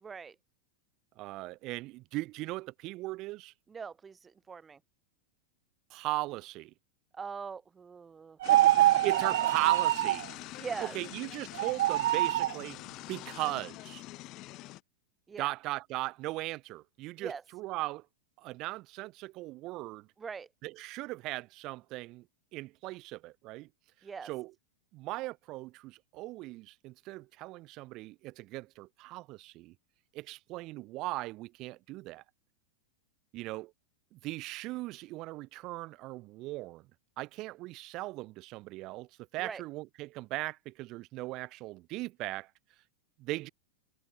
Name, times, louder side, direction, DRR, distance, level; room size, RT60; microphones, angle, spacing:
voice 1, 0.0-0.4 3.7-4.8 7.1-9.0 10.6-11.0 15.3-15.5 17.2-17.4 20.2-20.5 24.0-24.3 39.4-39.6, right 5 dB, 15° right, 3.5 m, -42 dB
voice 2, 1.2-3.5 5.9-6.7 9.0-10.2 10.8-12.8 13.1-14.0 15.4-18.0 18.4-20.1 20.6-22.2 22.5-23.7 24.2-24.5 24.9-29.7 30.1-32.2 33.3-33.7 34.1-36.8 37.2-39.1 39.3-42.5 43.2-43.5, right 19 dB, 40° right, 5.0 m, -38 dB
sound 1, 8.4-14.8, left 18 dB, 40° left, 5.5 m, -45 dB
sound 2, 8.4-10.2 11.5-12.6, right 14 dB, 55° right, 1.5 m, -25 dB
figure-of-eight pair, 90°, 0 cm